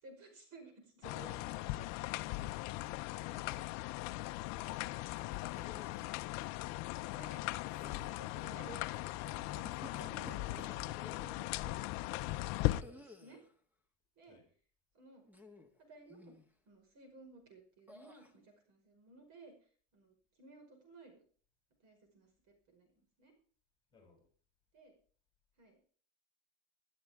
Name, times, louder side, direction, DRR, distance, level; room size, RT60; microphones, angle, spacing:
voice 1, 0.0-1.9 4.8-5.0 6.1-6.3 7.1-7.4 7.8-11.8 12.2-12.4 12.9-13.4 14.2-14.4 14.9-15.2 15.8-16.3 16.7-19.5 19.9-21.2 21.8-22.3 22.7-23.3 24.7-24.9 25.6-25.9, right 2 dB, 45° right, 5 dB, 5.2 m, -57 dB
sound 1, 1.0-12.8, left 19 dB, 50° left, 0.6 m, -39 dB
voice 2, 3.1-5.3 14.2-14.5 23.9-24.3, left 3 dB, 10° left, 1 dB, 7.1 m, -65 dB
sound 2, 5.5-6.2 7.6-8.3 9.5-11.3 12.8-13.5 15.3-15.8 16.1-16.5 17.9-18.3, left 2 dB, 5° right, 1.6 m, -55 dB
20.0 x 12.0 x 3.6 m, 0.44 s
supercardioid pair, 135°, 37 cm